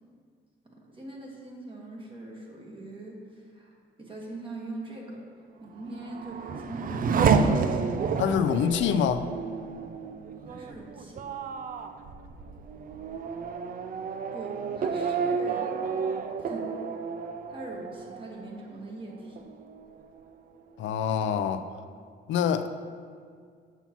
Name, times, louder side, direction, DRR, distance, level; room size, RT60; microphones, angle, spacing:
voice 1, 0.7-3.7 4.0-5.2 5.6-7.5 10.5-11.2 14.1-15.8 16.4-16.7 17.5-19.5, right 2 dB, 25° right, -2 dB, 1.4 m, -41 dB
Race car auto racing / Accelerating revving vroom, 5.7-19.0 19.4-20.1, right 5 dB, 45° right, 0.4 m, -30 dB
voice 2, 8.2-9.3 20.8-21.6 22.3-22.7, left 8 dB, 70° left, 9 dB, 0.4 m, -25 dB
7.0 x 5.7 x 2.9 m, 2.1 s
cardioid pair, 90°, 20 cm